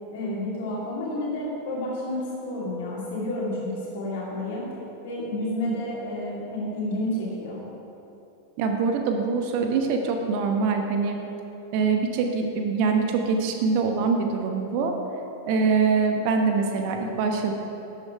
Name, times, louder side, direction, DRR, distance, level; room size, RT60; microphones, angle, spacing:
voice 1, 0.1-4.7 5.0-7.6, left 1 dB, 55° left, -5 dB, 2.4 m, -30 dB
voice 2, 8.6-11.2 11.7-14.9 15.5-17.5, right 4 dB, 45° right, 4 dB, 1.2 m, -24 dB
12.0 x 7.8 x 4.8 m, 2.9 s
figure-of-eight pair, 90°, 0 cm